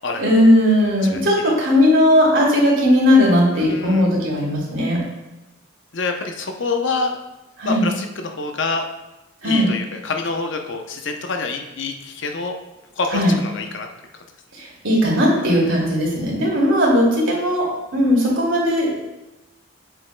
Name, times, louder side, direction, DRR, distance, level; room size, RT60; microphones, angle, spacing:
voice 1, 0.2-5.0 7.6-7.9 9.4-9.7 13.1-13.3 14.5-18.9, left 1 dB, 65° right, -4 dB, 2.4 m, -17 dB
voice 2, 1.1-1.5 3.5-4.1 5.9-7.2 7.6-8.9 9.4-12.5 13.0-13.9, left 3 dB, 55° left, 4 dB, 0.6 m, -26 dB
8.5 x 7.0 x 2.2 m, 1.0 s
head